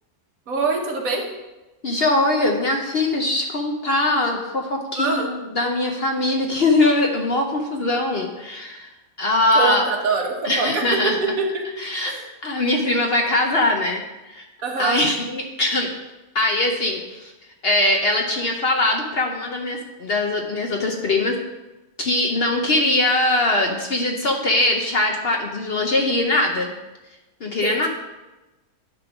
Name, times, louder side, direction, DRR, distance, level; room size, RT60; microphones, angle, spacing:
voice 1, 0.5-1.2 4.9-5.3 9.5-10.8 11.4-11.6 12.0-12.2 14.6-15.0 27.6-27.9, right 4 dB, 65° right, 0 dB, 1.6 m, -24 dB
voice 2, 1.8-8.9 9.2-9.9 10.4-11.2 11.8-12.1 12.4-14.0 14.3-14.4 14.8-15.9 16.3-17.3 17.6-21.4 22.0-26.7 27.4-27.9, left 2 dB, 50° left, 2 dB, 0.8 m, -21 dB
10.5 x 3.8 x 5.9 m, 1.1 s
omnidirectional pair, 1.6 m